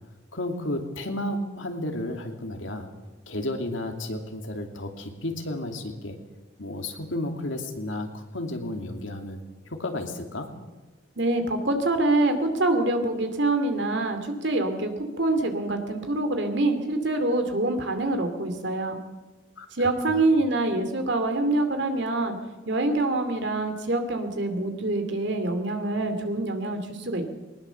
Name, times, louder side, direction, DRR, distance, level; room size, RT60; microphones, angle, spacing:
voice 1, 0.3-2.9 3.3-6.2 6.6-9.4 9.7-10.5 19.6-19.7 20.1-20.2, left 1 dB, 75° left, 4 dB, 2.5 m, -32 dB
voice 2, 11.2-19.0 19.7-22.3 22.7-27.4, right 2 dB, 60° right, 7 dB, 2.6 m, -25 dB
21.0 x 19.5 x 7.0 m, 1.2 s
head